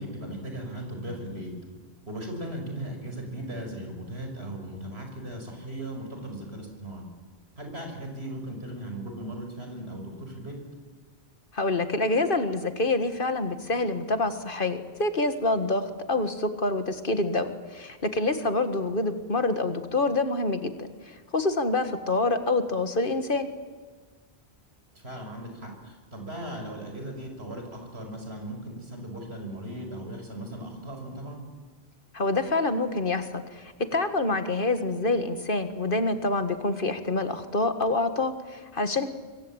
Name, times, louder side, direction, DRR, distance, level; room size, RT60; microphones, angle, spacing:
voice 1, 0.0-1.5 2.1-7.0 7.6-10.5 24.9-31.4, right 1 dB, 75° right, 3 dB, 6.2 m, -37 dB
voice 2, 11.5-23.5 32.1-39.1, left 2 dB, 55° left, 9 dB, 1.9 m, -27 dB
26.0 x 22.0 x 8.9 m, 1.5 s
omnidirectional pair, 1.1 m